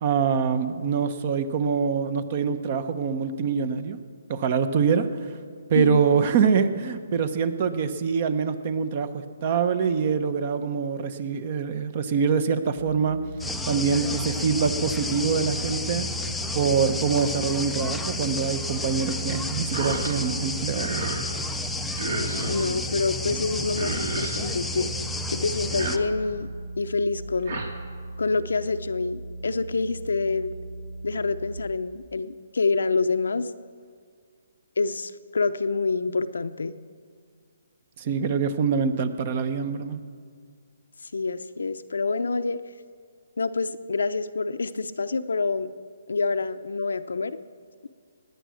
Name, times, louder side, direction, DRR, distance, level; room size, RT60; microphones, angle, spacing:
voice 1, 0.0-4.0 4.3-5.3 5.7-13.2 13.7-16.1 16.5-21.0 38.0-40.0, right 6 dB, 40° right, 12 dB, 0.9 m, -25 dB
sound 1, 12.8-31.6, right 2 dB, 80° right, 4.7 m, -38 dB
sound 2, 13.4-26.0, left 2 dB, 5° left, 0.4 m, -32 dB
sound 3, 19.7-20.1 20.5-21.3 22.0-22.7 23.4-23.5 23.7-24.4 25.6-26.4 27.2-27.7, right 2 dB, 60° right, 2.2 m, -32 dB
voice 2, 22.4-24.9 25.3-26.5 26.8-27.6 28.2-30.5 31.0-33.5 34.8-36.8 41.1-42.6 43.4-45.7 46.1-47.4, left 4 dB, 85° left, 11 dB, 0.7 m, -27 dB
18.5 x 9.3 x 6.4 m, 2.1 s
hypercardioid pair, 155°, 0 cm